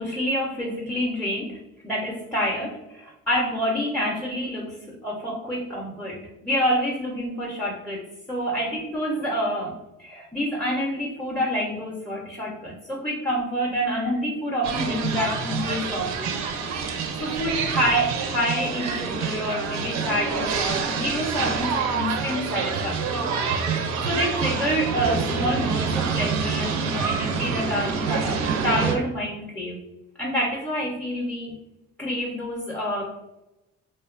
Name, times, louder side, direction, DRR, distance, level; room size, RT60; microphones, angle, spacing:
voice 1, 0.0-16.4 17.2-23.3 23.6-23.7 24.0-29.8 30.2-31.5 32.0-33.2, equal, 5° left, -2 dB, 0.4 m, -27 dB
sound 1, 14.6-28.9, right 5 dB, 65° right, 0.4 m, -27 dB
2.8 x 2.1 x 2.4 m, 0.94 s
cardioid pair, 90°, 30 cm